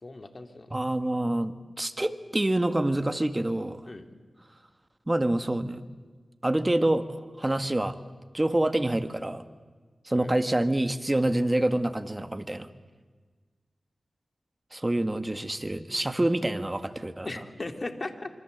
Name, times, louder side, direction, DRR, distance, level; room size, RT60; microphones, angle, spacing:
voice 1, 0.0-0.7 3.9-4.0 10.1-10.3 17.2-18.3, left 2 dB, 40° left, 7 dB, 2.8 m, -37 dB
voice 2, 0.7-3.9 5.1-5.8 6.4-7.0 7.4-8.0 8.3-9.4 10.1-12.7 14.7-17.3, right 1 dB, 20° right, 10 dB, 1.7 m, -26 dB
26.5 x 25.5 x 8.1 m, 1.4 s
wide cardioid pair, 65°, 0 cm